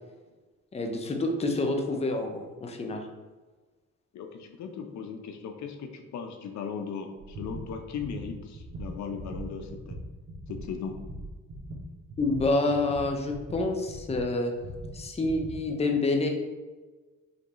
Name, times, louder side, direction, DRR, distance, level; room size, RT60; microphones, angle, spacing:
voice 1, 0.7-3.0 12.2-14.5 14.9-16.3, left 2 dB, 20° left, 3 dB, 0.7 m, -28 dB
voice 2, 4.1-10.0 10.5-11.0, left 6 dB, 70° left, 5 dB, 0.7 m, -37 dB
sound 1, 7.2-14.2 14.6-15.5, right 1 dB, 55° right, 1.2 m, -41 dB
5.2 x 3.2 x 3.0 m, 1.3 s
cardioid pair, 90°, 30 cm